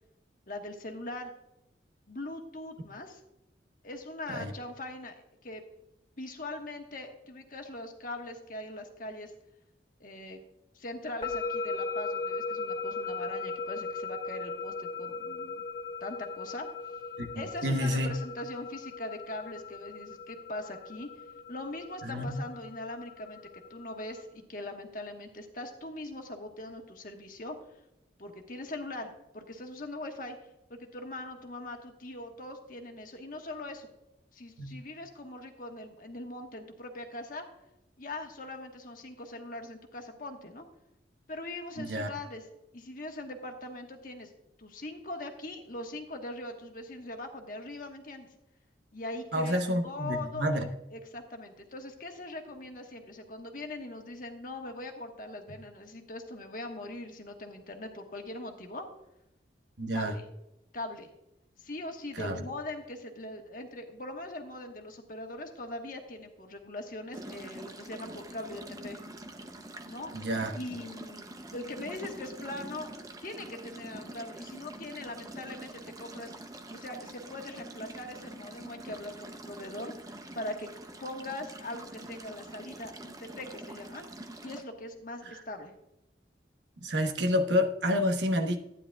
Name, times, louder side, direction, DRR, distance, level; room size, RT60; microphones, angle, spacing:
voice 1, 0.5-1.3 2.1-3.2 3.8-5.1 5.4-5.6 6.2-9.3 10.0-10.4 10.7-15.6 16.0-16.7 17.3-21.1 21.5-23.4 23.7-27.6 28.2-30.4 30.7-33.9 34.3-37.5 38.0-40.7 41.3-42.4 42.7-44.3 44.6-48.3 48.9-58.9 59.9-60.2 60.7-61.1 61.6-69.0 69.9-70.1 70.5-72.9 73.2-76.3 76.7-80.7 81.0-84.0 84.4-85.7, left 1 dB, 50° left, 1.3 m, -41 dB
sound 1, 11.2-24.2, left 4 dB, 30° left, 1.1 m, -38 dB
voice 2, 17.2-18.1 22.0-22.5 34.6-34.7 41.8-42.1 49.3-50.6 59.8-60.2 62.2-62.4 70.1-70.6 86.8-88.6, equal, 90° right, 1.1 m, -29 dB
sound 2, 67.1-84.6, right 1 dB, 20° right, 0.6 m, -45 dB
12.0 x 9.7 x 2.3 m
head